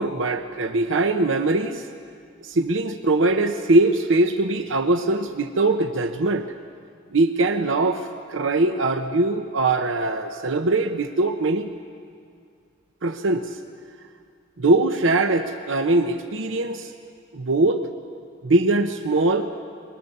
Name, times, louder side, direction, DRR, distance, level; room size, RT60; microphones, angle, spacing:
voice 1, 0.0-1.9 2.4-6.5 7.1-11.7 13.0-13.6 14.6-16.9 17.3-17.9 18.4-19.5, right 2 dB, 75° right, 7 dB, 0.8 m, -21 dB
23.5 x 21.5 x 6.7 m, 2.3 s
head